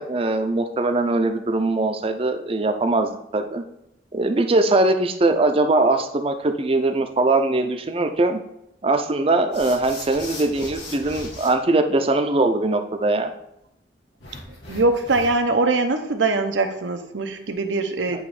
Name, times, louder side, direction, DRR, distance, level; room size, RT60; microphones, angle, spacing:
voice 1, 0.0-3.6 4.1-8.4 8.8-13.3 18.1-18.2, right 2 dB, 30° right, 7 dB, 0.5 m, -21 dB
sound 1, 9.5-11.5 14.2-15.5, left 2 dB, 75° left, 1.9 m, -38 dB
voice 2, 14.7-18.2, right 3 dB, 90° right, 6 dB, 0.8 m, -22 dB
8.8 x 3.1 x 4.8 m, 0.84 s
head